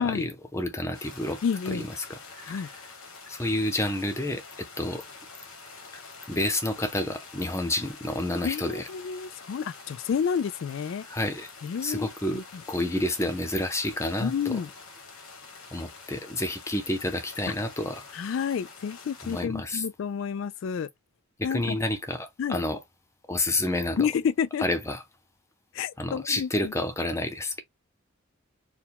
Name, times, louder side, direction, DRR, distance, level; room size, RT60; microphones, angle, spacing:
voice 1, 0.0-2.7 3.3-5.0 6.3-8.9 11.1-11.5 11.8-12.4 12.7-14.6 15.7-18.1 19.2-19.8 21.4-22.8 23.3-24.1 24.6-25.0 26.0-27.6, left 1 dB, 15° left, 0.6 m, -30 dB
sound 1, 0.9-19.4, left 4 dB, 90° left, 1.5 m, -47 dB
voice 2, 1.4-1.9 2.5-2.7 8.4-11.1 11.6-12.6 14.2-14.7 18.1-20.9 21.4-21.8 22.4-22.6 24.0-24.6 25.7-26.7, left 7 dB, 60° left, 0.3 m, -30 dB
4.6 x 2.2 x 3.5 m
head